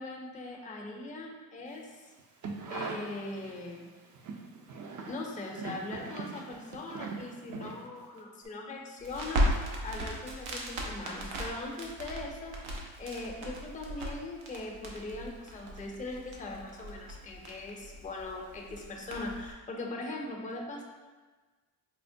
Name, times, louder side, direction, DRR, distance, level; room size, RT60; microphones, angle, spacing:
voice 1, 0.0-2.1 2.7-3.9 5.1-9.5 9.8-12.6 13.0-20.8, left 2 dB, 15° left, 0 dB, 0.5 m, -40 dB
sound 1, 2.2-3.7 4.1-8.2 8.4-8.5, right 4 dB, 40° right, 0.5 m, -41 dB
Crackle, 9.0-19.5, equal, 85° right, 0.7 m, -36 dB
4.3 x 2.1 x 2.6 m, 1.3 s
supercardioid pair, 70°, 46 cm